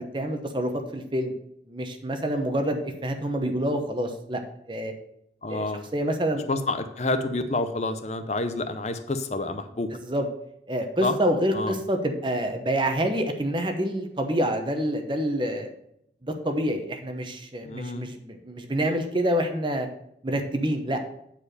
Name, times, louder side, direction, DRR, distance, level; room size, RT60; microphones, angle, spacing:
voice 1, 0.0-1.4 1.7-4.4 4.7-4.9 5.5-5.7 5.9-6.4 10.1-10.2 10.7-15.7 16.2-19.9 20.2-21.0, equal, 25° right, 6 dB, 1.0 m, -27 dB
voice 2, 5.4-5.9 6.5-9.9 11.0-11.2 11.5-11.8 17.7-18.1, left 2 dB, 40° left, 9 dB, 0.6 m, -28 dB
8.8 x 4.8 x 6.6 m, 0.76 s
head